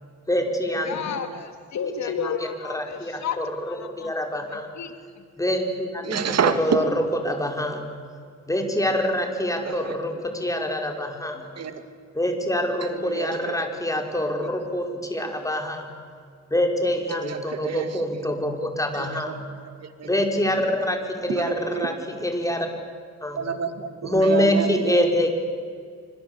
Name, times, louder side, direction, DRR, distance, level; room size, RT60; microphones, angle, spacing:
voice 1, 0.3-1.0 2.0-2.1 2.6-3.5 4.0-4.7 5.4-6.2 6.6-6.8 7.2-7.9 8.5-11.4 12.2-15.9 16.5-19.4 20.0-21.5 21.8-21.9 22.2-22.7 23.2-23.4 24.0-25.3, left 1 dB, 10° left, 3 dB, 5.6 m, -25 dB
voice 2, 0.9-3.4 3.6-4.1 4.5-5.2, left 6 dB, 65° left, 7 dB, 2.7 m, -32 dB
voice 3, 6.0-6.9 9.3-10.2 11.6-11.8 12.8-13.6 14.4-14.5 15.2-15.3 17.1-18.3 18.9-19.4 19.8-20.2 21.3-21.9 23.4-25.1, right 7 dB, 55° right, 9 dB, 2.5 m, -29 dB
27.0 x 26.0 x 8.4 m, 2.1 s
cardioid pair, 90°, 30 cm